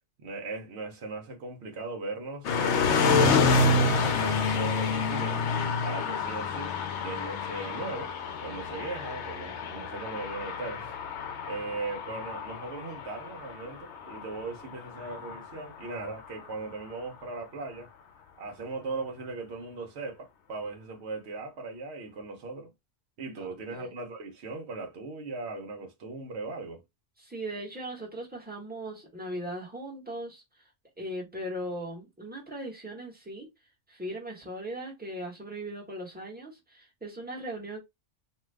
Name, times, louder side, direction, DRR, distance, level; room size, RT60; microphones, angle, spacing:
voice 1, 0.2-5.4 5.8-6.7 7.0-8.2 8.4-11.0 11.4-17.9 18.4-22.7 23.2-26.8, right 3 dB, 65° right, 1.0 m, -38 dB
sound 1, 2.4-16.5, left 4 dB, 70° left, 0.9 m, -28 dB
voice 2, 23.4-23.9 27.2-30.4 31.0-33.5 33.9-37.8, right 1 dB, 10° right, 1.1 m, -38 dB
2.6 x 2.4 x 3.2 m
omnidirectional pair, 1.3 m